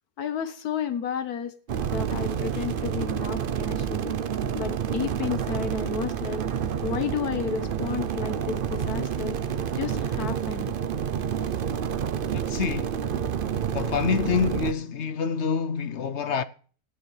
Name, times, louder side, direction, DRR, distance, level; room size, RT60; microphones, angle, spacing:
voice 1, 0.2-1.5 1.9-4.2 4.5-6.4 6.8-9.4 9.8-10.7, left 7 dB, 80° left, 1.5 m, -32 dB
sound 1, 1.7-14.7, right 8 dB, 55° right, 0.6 m, -29 dB
voice 2, 12.3-13.0 13.7-16.4, left 6 dB, 60° left, 0.9 m, -27 dB
18.0 x 11.5 x 3.3 m
omnidirectional pair, 1.6 m